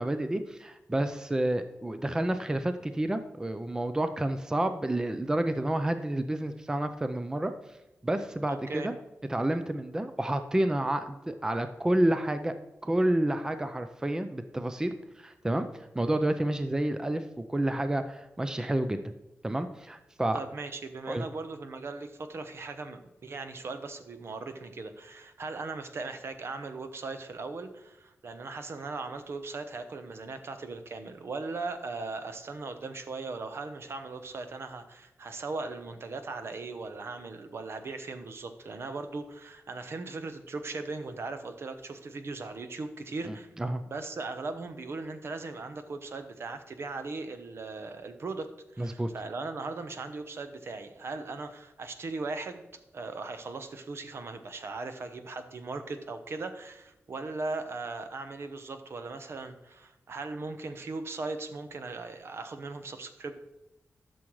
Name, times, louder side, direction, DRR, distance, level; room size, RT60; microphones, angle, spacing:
voice 1, 0.0-7.5 8.0-8.9 9.3-12.5 12.8-15.7 15.9-19.0 19.4-20.4 21.1-21.2 43.2-43.8 48.8-49.1, right 1 dB, 15° right, 9 dB, 0.5 m, -29 dB
voice 2, 8.4-8.9 20.3-43.5 43.8-52.6 52.9-63.3, right 3 dB, 60° right, 8 dB, 0.9 m, -38 dB
12.0 x 6.3 x 3.1 m, 0.98 s
wide cardioid pair, 115°, 5 cm